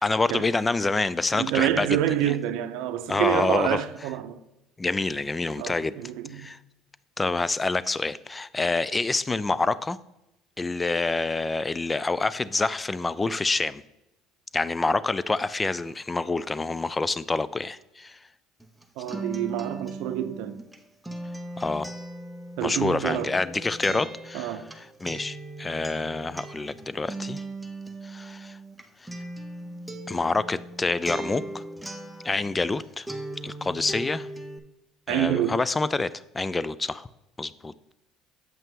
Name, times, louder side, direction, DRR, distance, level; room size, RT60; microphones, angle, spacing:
voice 1, 0.0-1.9 2.2-2.3 3.1-3.8 4.8-6.0 6.3-6.6 7.2-10.0 10.6-13.8 14.5-18.2 21.6-21.9 22.6-27.4 28.0-28.6 30.1-31.6 32.2-33.1 33.4-34.3 35.1-37.1 37.4-37.7, left 3 dB, 20° left, 0.3 m, -27 dB
voice 2, 1.3-4.4 5.6-6.5 19.0-20.6 22.6-23.4 23.9-24.0 24.3-24.7 35.1-35.6, right 12 dB, 75° right, 0.5 m, -27 dB
Acoustic guitar, 18.6-32.8 33.1-34.6, right 2 dB, 5° right, 0.7 m, -38 dB
7.7 x 5.5 x 3.7 m
supercardioid pair, 100°, 0 cm